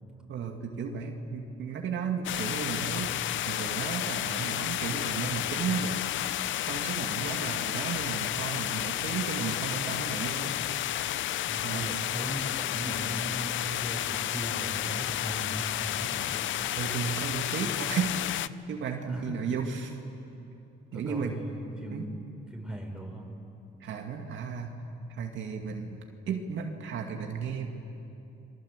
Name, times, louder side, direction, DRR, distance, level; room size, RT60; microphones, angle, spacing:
voice 1, 0.3-6.0 6.7-10.6 11.6-11.9 15.8-16.0 16.8-18.2 18.7-19.9 20.9-21.4 21.9-22.1 23.8-24.7 25.1-27.7, right 6 dB, 70° right, 2 dB, 2.4 m, -34 dB
sound 1, 2.2-18.5, left 13 dB, 75° left, 0.6 m, -31 dB
voice 2, 11.4-16.3 19.0-19.6 20.9-22.2 22.5-23.3, right 1 dB, 5° right, 1 dB, 6.0 m, -38 dB
29.5 x 23.0 x 8.3 m, 2.8 s
cardioid pair, 90°, 20 cm